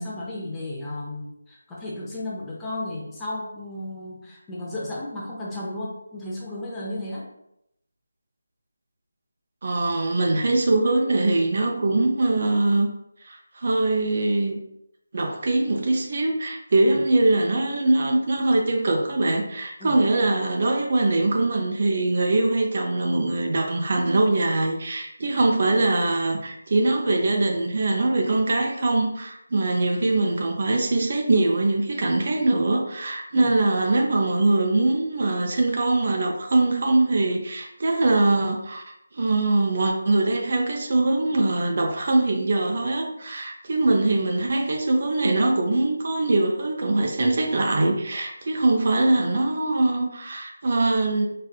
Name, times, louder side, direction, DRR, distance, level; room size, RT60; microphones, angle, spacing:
voice 1, 0.0-7.3 16.8-17.0 19.8-20.0 33.3-33.5, left 1 dB, 10° left, -5 dB, 0.6 m, -34 dB
voice 2, 9.6-12.9 13.2-14.6 15.1-38.8 39.1-51.3, right 2 dB, 45° right, 1 dB, 0.5 m, -22 dB
4.2 x 2.4 x 2.3 m, 0.80 s
figure-of-eight pair, 165°, 0 cm